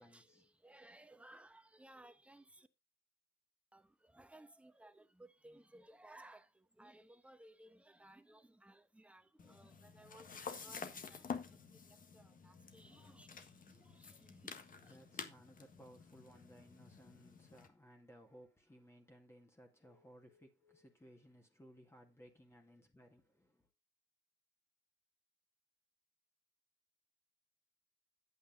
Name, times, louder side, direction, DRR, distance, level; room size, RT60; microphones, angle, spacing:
voice 1, 0.0-0.8 14.8-23.7, equal, 15° left, 2.1 m, -61 dB
voice 2, 0.6-2.7 3.7-3.8 4.1-6.5 6.8-11.2 11.5-11.6 12.1-14.9, right 1 dB, 5° right, 1.0 m, -60 dB
sound 1, 9.4-17.7, left 6 dB, 45° left, 1.5 m, -50 dB
8.7 x 8.5 x 3.9 m
cardioid pair, 90°, 20 cm